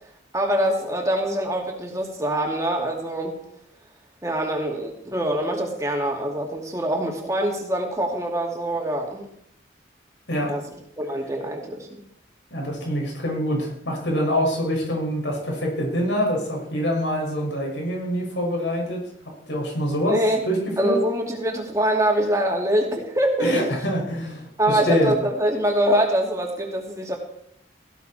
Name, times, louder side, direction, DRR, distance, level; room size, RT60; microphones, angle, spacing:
voice 1, 0.3-3.4 4.2-9.3 10.4-10.6 11.0-12.0 20.1-20.5 20.8-23.6 24.6-27.2, right 1 dB, 15° right, 1 dB, 2.6 m, -24 dB
voice 2, 12.5-19.0 19.5-20.2 20.5-21.0 23.4-25.1, equal, 85° left, 0 dB, 6.1 m, -25 dB
18.0 x 15.0 x 4.4 m, 0.71 s
head